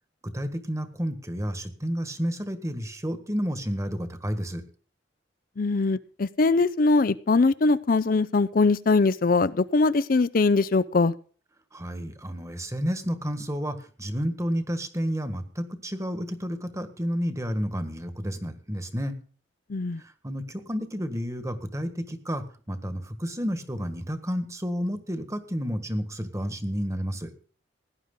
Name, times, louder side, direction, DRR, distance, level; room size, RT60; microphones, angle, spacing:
voice 1, 0.2-4.6 11.7-19.1 20.0-27.3, equal, 15° right, 9 dB, 1.6 m, -31 dB
voice 2, 5.6-11.1 19.7-20.0, left 3 dB, 50° left, 15 dB, 0.5 m, -22 dB
17.5 x 11.0 x 3.8 m, 0.40 s
head